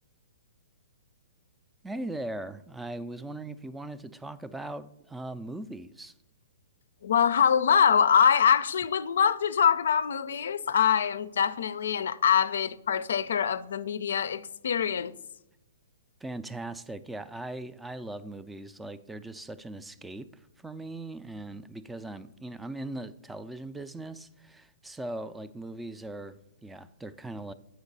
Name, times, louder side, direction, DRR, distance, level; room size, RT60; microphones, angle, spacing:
voice 1, 1.8-6.1 16.2-27.5, right 2 dB, 5° right, 0.3 m, -39 dB
voice 2, 7.0-15.1, left 7 dB, 75° left, 0.4 m, -24 dB
8.1 x 5.2 x 4.0 m
hypercardioid pair, 135°, 0 cm